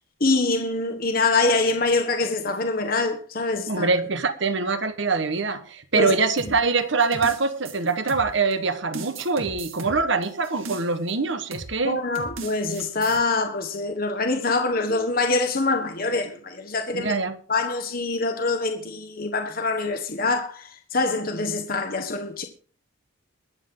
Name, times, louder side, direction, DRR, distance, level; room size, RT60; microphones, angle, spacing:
voice 1, 0.2-3.9 6.0-6.1 6.4-6.5 11.8-17.1 17.5-22.4, left 3 dB, 45° left, 1.3 m, -24 dB
voice 2, 3.7-12.0 16.9-17.4, right 4 dB, 65° right, 1.3 m, -24 dB
sound 1, 6.4-8.5 8.9-11.1 11.5-11.8 12.1-13.2, right 3 dB, 80° right, 2.5 m, -37 dB
22.5 x 7.8 x 3.8 m
head